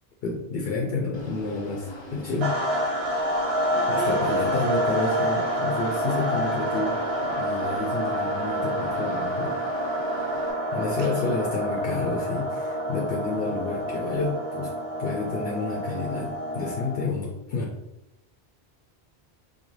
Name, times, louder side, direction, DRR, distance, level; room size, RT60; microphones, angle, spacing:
voice 1, 0.2-2.6 3.9-9.5 10.7-14.7 15.0-17.8, left 3 dB, 65° left, -1 dB, 0.7 m, -30 dB
sound 1, 1.1-10.5, equal, 35° left, 0.5 m, -42 dB
sound 2, 2.4-17.2, equal, 35° right, 0.9 m, -28 dB
voice 2, 3.7-4.2 4.6-4.7 10.8-11.4, right 5 dB, 80° right, 3 dB, 0.8 m, -37 dB
3.9 x 2.1 x 3.1 m, 0.92 s
omnidirectional pair, 1.1 m